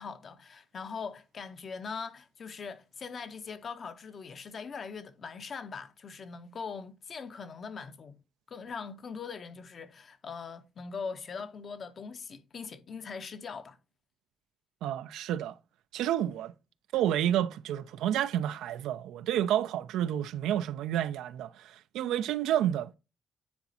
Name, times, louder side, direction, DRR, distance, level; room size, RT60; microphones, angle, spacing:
voice 1, 0.0-8.2 8.5-13.8 22.2-22.3, left 5 dB, 50° left, 0.7 m, -41 dB
voice 2, 14.8-15.6 15.9-16.5 16.9-23.0, right 11 dB, 85° right, 0.4 m, -30 dB
9.5 x 4.1 x 2.7 m
cardioid pair, 90°, 0 cm